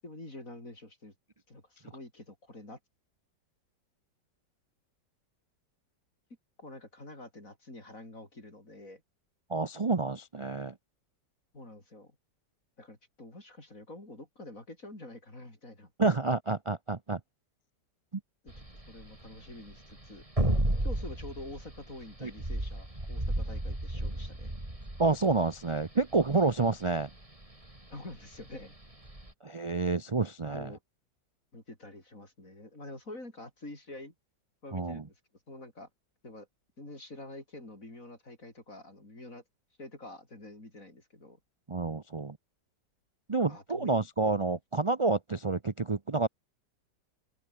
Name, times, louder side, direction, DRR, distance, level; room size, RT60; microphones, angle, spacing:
voice 1, 0.0-1.1 1.5-2.8 6.6-9.0 11.5-12.2 12.8-15.9 18.4-20.2 20.8-24.5 27.9-28.8 30.2-30.8 31.5-34.1 34.6-35.2 35.5-35.9 36.2-36.5 36.8-39.4 39.8-41.4 43.5-44.0, left 2 dB, 45° left, 7.5 m, -47 dB
voice 2, 9.5-10.7 16.0-17.2 22.2-22.3 25.0-27.1 29.4-30.7 34.7-35.0 41.7-42.4 43.3-46.3, right 3 dB, 50° right, 0.3 m, -29 dB
sound 1, 18.5-29.3, right 1 dB, 20° right, 4.4 m, -33 dB
open air
omnidirectional pair, 1.9 m